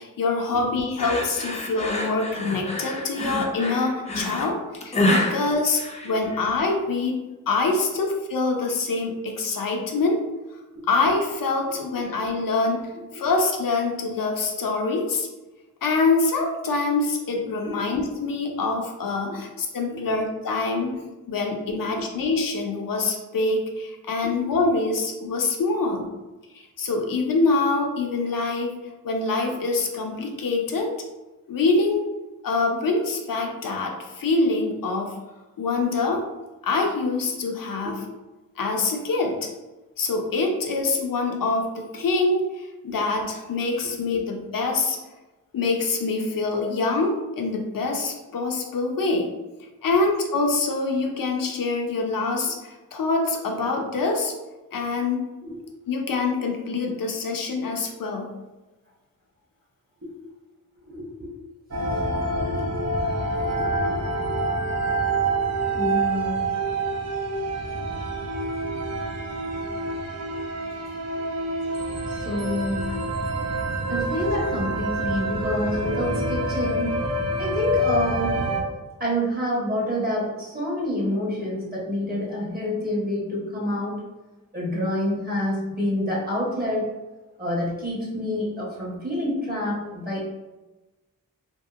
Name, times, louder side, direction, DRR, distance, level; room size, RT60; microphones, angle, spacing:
voice 1, 0.0-4.6 4.8-7.2 7.5-10.2 10.8-15.3 15.8-21.0 21.3-26.1 26.5-28.7 29.0-30.9 31.5-32.0 32.4-35.2 35.6-36.2 36.6-38.0 38.6-39.5 40.0-45.0 45.5-49.3 49.8-54.3 54.7-55.3 55.9-58.3, left 3 dB, 70° left, 2 dB, 0.5 m, -25 dB
sound 1, 1.0-6.5, left 1 dB, 20° left, 0.4 m, -27 dB
voice 2, 11.7-12.0 13.1-13.2 17.7-17.8 19.3-19.4 19.9-20.0 21.7-22.1 24.2-24.3 25.9-26.0 37.8-38.0 55.4-55.6 60.0-60.1 60.8-61.3 62.2-62.7 65.7-66.5 72.1-73.0 73.9-77.0 77.4-78.4 79.0-84.0 84.5-86.9 87.4-90.3, left 1 dB, 25° right, -5 dB, 1.1 m, -28 dB
sound 2, 61.7-78.6, right 1 dB, 50° right, 0.7 m, -27 dB
2.7 x 2.6 x 2.4 m, 1.1 s
wide cardioid pair, 75°, 35 cm